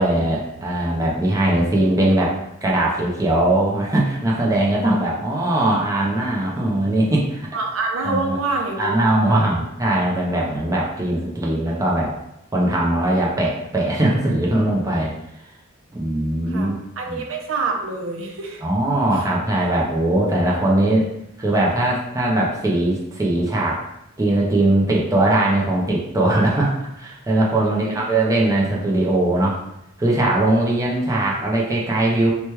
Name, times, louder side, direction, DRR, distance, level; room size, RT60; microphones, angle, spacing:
voice 1, 0.0-2.3 2.6-7.5 8.0-8.4 8.8-12.1 12.5-15.1 15.9-16.8 17.1-17.2 18.6-21.1 21.4-23.8 24.2-29.6 30.0-32.3, right 1 dB, 15° right, -4 dB, 0.5 m, -20 dB
voice 2, 7.5-9.4 10.3-10.5 12.9-13.2 16.5-18.6 27.6-28.0, right 3 dB, 75° right, 1 dB, 0.5 m, -27 dB
2.9 x 2.2 x 3.0 m, 0.86 s
head